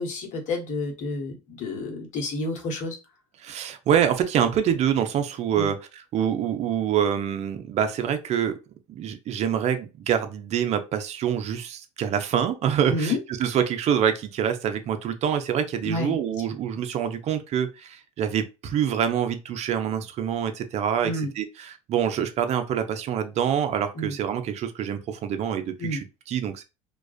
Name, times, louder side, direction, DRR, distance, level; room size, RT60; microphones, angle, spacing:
voice 1, 0.0-3.0 5.6-5.7 12.9-13.2 15.8-16.1 21.0-21.3 24.0-24.2 25.8-26.0, left 2 dB, 55° left, 1.0 m, -29 dB
voice 2, 3.4-8.6 8.9-26.6, right 9 dB, 45° right, 0.5 m, -26 dB
2.3 x 2.2 x 2.4 m
supercardioid pair, 85°, 15 cm